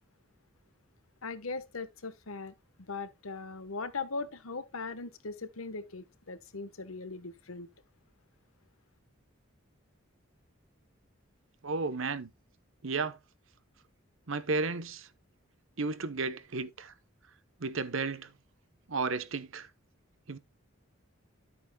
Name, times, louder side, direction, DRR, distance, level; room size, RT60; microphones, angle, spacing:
voice 1, 1.2-7.7, left 4 dB, 90° left, 1.3 m, -39 dB
voice 2, 11.6-12.3 12.8-13.2 14.3-15.1 15.8-16.9 17.6-18.3 18.9-19.7 20.3-20.4, right 4 dB, 70° right, 1.0 m, -33 dB
12.0 x 8.3 x 2.3 m
head